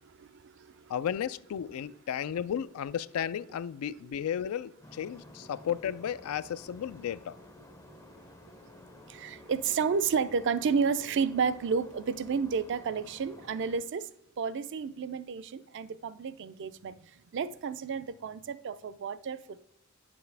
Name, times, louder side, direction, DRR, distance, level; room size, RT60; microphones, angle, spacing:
voice 1, 0.0-1.0 1.8-2.0 4.0-4.2 7.8-14.1 14.4-19.7, right 5 dB, 55° right, 14 dB, 0.4 m, -32 dB
voice 2, 0.9-7.3, left 9 dB, 85° left, 17 dB, 0.3 m, -34 dB
sound 1, 4.8-13.8, left 2 dB, 15° left, 0.5 m, -53 dB
9.3 x 7.0 x 3.3 m, 0.81 s
head